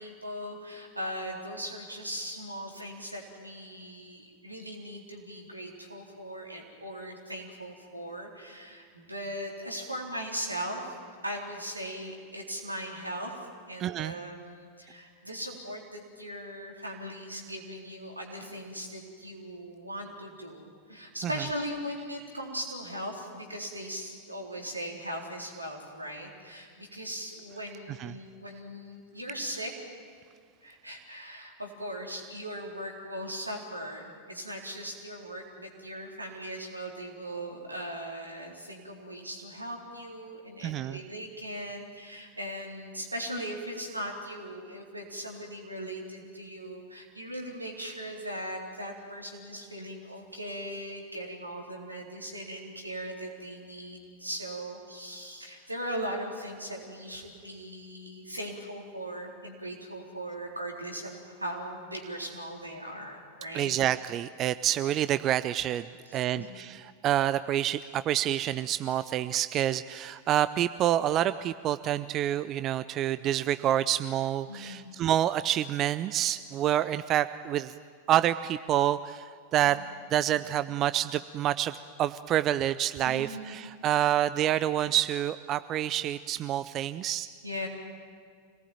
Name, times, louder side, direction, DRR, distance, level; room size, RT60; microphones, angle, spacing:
voice 1, 0.0-10.9 11.2-13.3 13.7-29.7 30.6-63.8 66.1-66.5 74.5-74.9 79.6-79.8 83.0-83.5 87.4-87.7, equal, 85° right, 0 dB, 4.0 m, -39 dB
voice 2, 13.8-14.2 28.0-28.1 40.6-41.0 63.5-65.9 66.1-77.7 78.1-79.8 80.1-81.7 82.0-87.3, right 12 dB, 35° right, 14 dB, 0.5 m, -28 dB
26.0 x 19.0 x 9.1 m, 2.1 s
figure-of-eight pair, 90°, 0 cm